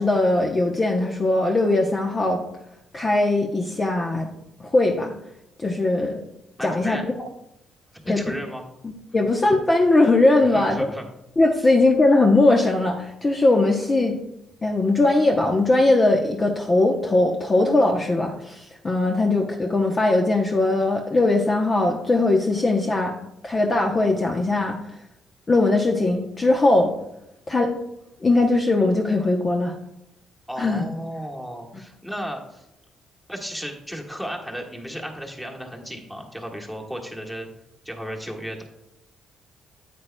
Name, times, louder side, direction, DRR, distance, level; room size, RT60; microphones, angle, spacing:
voice 1, 0.0-2.4 2.9-4.3 4.6-5.1 5.6-6.2 6.6-7.0 8.1-8.2 9.1-10.9 11.4-14.2 14.6-23.2 23.4-24.8 25.5-26.9 27.5-27.7 28.2-29.7 30.6-30.9, left 2 dB, 30° left, 2 dB, 0.8 m, -20 dB
voice 2, 6.6-7.0 8.0-8.6 9.1-9.2 10.4-11.0 11.6-11.7 30.5-32.7 33.3-37.5 37.8-38.6, equal, 5° left, 1 dB, 1.6 m, -34 dB
9.3 x 8.6 x 2.2 m, 0.87 s
cardioid pair, 90°, 0 cm